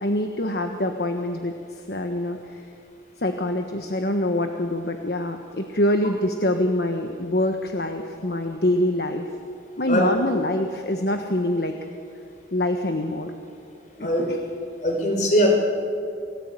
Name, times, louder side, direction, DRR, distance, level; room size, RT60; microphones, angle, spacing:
voice 1, 0.0-1.5 1.9-2.6 3.2-9.3 9.8-11.8 12.5-13.3 14.0-14.4, left 1 dB, 60° left, 5 dB, 1.4 m, -25 dB
voice 2, 14.8-15.5, equal, 45° left, 2 dB, 5.3 m, -21 dB
29.0 x 18.5 x 9.2 m, 2.5 s
head